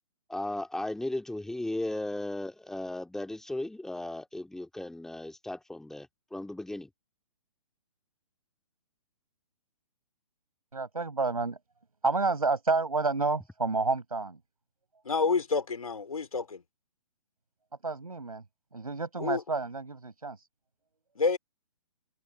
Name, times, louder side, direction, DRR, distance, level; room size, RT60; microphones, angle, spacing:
voice 1, 0.3-6.9, left 1 dB, ahead, 2.7 m, -36 dB
voice 2, 10.7-11.6 12.0-14.4 17.8-18.4 18.7-20.4, right 3 dB, 75° right, 6.7 m, -29 dB
voice 3, 15.0-16.6 19.2-19.4 21.2-21.4, left 4 dB, 70° left, 2.9 m, -28 dB
figure-of-eight pair, 130°, 19 cm